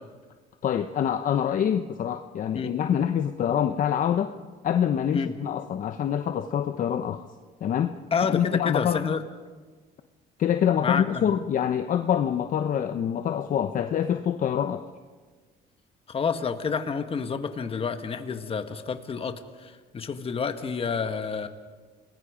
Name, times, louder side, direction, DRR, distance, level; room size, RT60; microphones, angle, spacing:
voice 1, 0.6-4.3 4.6-7.3 7.6-7.9 8.3-9.1 10.4-14.9, left 9 dB, 50° left, 8 dB, 0.9 m, -25 dB
voice 2, 8.1-9.2 10.8-11.2 16.1-21.5, left 5 dB, 35° left, 8 dB, 1.7 m, -29 dB
29.0 x 20.5 x 5.1 m, 1.4 s
cardioid pair, 110°, 17 cm